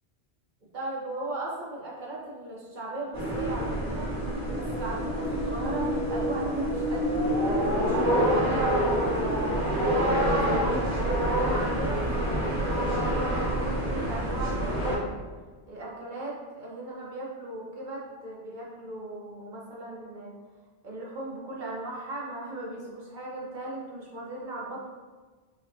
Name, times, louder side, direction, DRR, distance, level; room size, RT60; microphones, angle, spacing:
voice 1, 0.7-4.1 4.5-9.3 10.4-15.2 15.7-20.3 20.8-24.9, right 2 dB, 50° right, -4 dB, 0.8 m, -38 dB
sound 1, 3.1-15.0, equal, 90° right, 1.6 m, -27 dB
5.0 x 2.1 x 2.6 m, 1.4 s
omnidirectional pair, 1.1 m